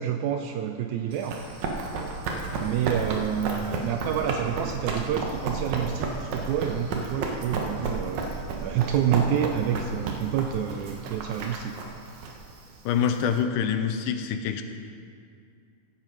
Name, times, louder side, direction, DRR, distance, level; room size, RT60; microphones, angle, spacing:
voice 1, 0.0-1.4 2.6-11.8, right 9 dB, 80° right, 5 dB, 1.7 m, -28 dB
Run, 1.1-13.4, right 3 dB, 65° right, 2.3 m, -32 dB
voice 2, 12.9-14.6, left 7 dB, 85° left, 7 dB, 2.2 m, -25 dB
15.5 x 7.5 x 5.0 m, 2.3 s
omnidirectional pair, 3.9 m